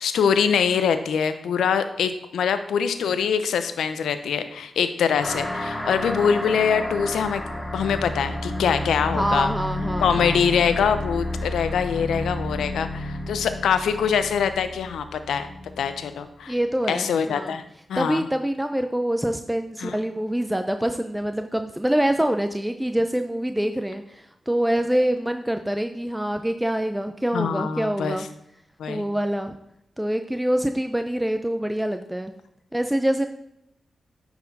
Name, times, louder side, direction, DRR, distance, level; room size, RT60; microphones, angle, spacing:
voice 1, 0.0-7.4 7.7-9.5 10.0-15.5 15.8-16.5 16.9-17.6 17.9-18.2 19.8-20.0 27.3-28.2 28.8-29.0, left 7 dB, 85° left, 10 dB, 0.6 m, -24 dB
sound 1, 5.2-16.2, left 1 dB, 10° left, 2.3 m, -31 dB
voice 2, 9.1-10.4 16.5-17.6 18.0-28.2 28.9-29.5 30.0-32.3 32.7-33.3, right 1 dB, 10° right, 7 dB, 0.6 m, -25 dB
9.5 x 4.4 x 4.1 m, 0.79 s
supercardioid pair, 40°, 0 cm